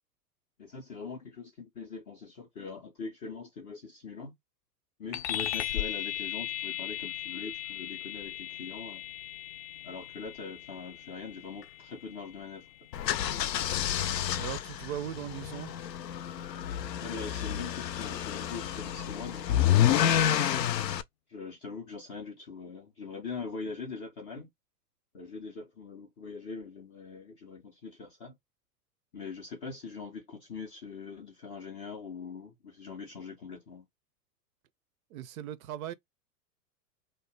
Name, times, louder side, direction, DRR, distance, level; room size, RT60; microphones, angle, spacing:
voice 1, 0.6-4.3 5.0-9.0 9.8-12.7 17.0-19.8 21.3-24.5 25.1-28.3 29.1-33.9, left 4 dB, 20° left, 0.3 m, -42 dB
sound 1, 5.1-15.0, left 12 dB, 45° left, 0.7 m, -38 dB
sound 2, 12.9-21.0, left 10 dB, 85° left, 0.5 m, -29 dB
voice 2, 14.3-15.7 35.1-35.9, right 11 dB, 60° right, 0.5 m, -38 dB
2.8 x 2.1 x 3.2 m
hypercardioid pair, 105°, 48 cm